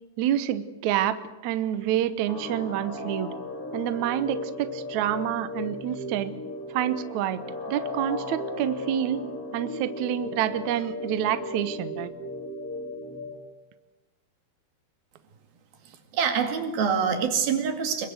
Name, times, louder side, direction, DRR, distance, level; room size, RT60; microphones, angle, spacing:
voice 1, 0.2-3.3 3.7-6.3 6.7-7.4 7.7-9.2 9.5-12.1, right 11 dB, 80° right, 12 dB, 1.6 m, -28 dB
sound 1, 2.3-13.4, left 1 dB, 25° left, 3.0 m, -36 dB
voice 2, 16.1-18.1, right 7 dB, 65° right, 5 dB, 4.0 m, -25 dB
25.0 x 22.5 x 7.9 m, 1.1 s
omnidirectional pair, 4.8 m